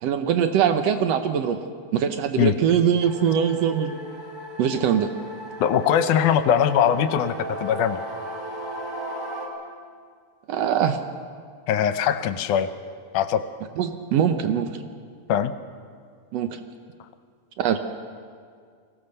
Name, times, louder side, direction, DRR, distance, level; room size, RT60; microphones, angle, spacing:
voice 1, 0.0-1.6 1.9-4.0 4.6-5.1 10.5-11.0 13.8-14.7 16.3-16.6 17.6-17.8, right 8 dB, 80° right, 7 dB, 1.5 m, -22 dB
sound 1, 3.0-9.5, right 1 dB, 10° right, 3.0 m, -36 dB
voice 2, 5.6-8.0 11.7-12.7 13.1-13.4 15.3-15.5, left 9 dB, 75° left, 10 dB, 2.1 m, -21 dB
23.5 x 17.0 x 6.6 m, 2.1 s
omnidirectional pair, 4.0 m